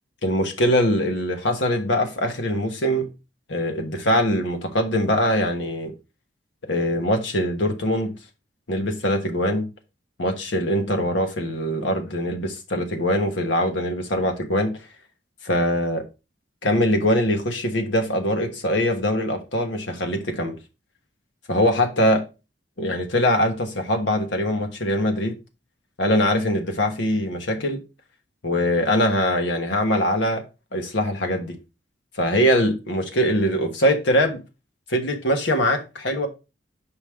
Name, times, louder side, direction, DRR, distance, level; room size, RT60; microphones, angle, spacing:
voice 1, 0.2-3.1 3.5-5.9 6.7-8.1 8.7-9.7 10.2-14.8 15.4-16.0 16.6-20.6 21.5-22.2 22.8-25.3 26.0-27.8 28.4-30.4 30.7-31.6 32.2-34.4 34.9-36.3, equal, 80° left, 1.3 m, -22 dB
6.3 x 5.2 x 3.5 m
head